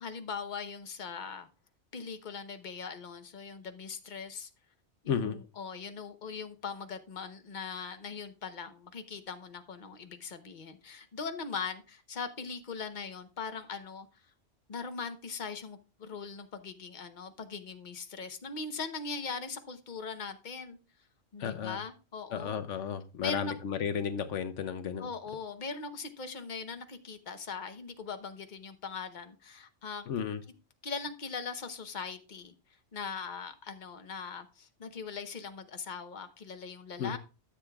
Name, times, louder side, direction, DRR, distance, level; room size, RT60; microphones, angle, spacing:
voice 1, 0.0-1.5 1.9-4.5 5.0-14.1 14.7-20.8 21.3-22.6 23.2-23.5 25.0-30.0 30.8-32.5 32.9-37.2, left 5 dB, 40° left, 1.0 m, -40 dB
voice 2, 5.1-5.4 21.4-21.8 22.3-25.1 30.1-30.4 37.0-37.2, left 7 dB, 75° left, 1.1 m, -33 dB
13.5 x 7.5 x 2.3 m
omnidirectional pair, 1.3 m